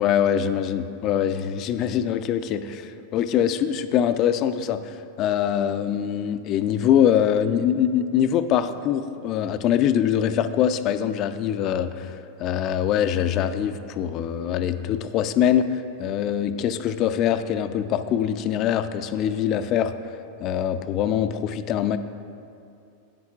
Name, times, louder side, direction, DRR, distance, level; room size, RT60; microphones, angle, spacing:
voice 1, 0.0-12.1 12.4-15.6 16.0-19.9 20.4-22.0, left 9 dB, 45° left, 10 dB, 0.4 m, -23 dB
12.0 x 9.4 x 2.4 m, 2.5 s
hypercardioid pair, 110°, 0 cm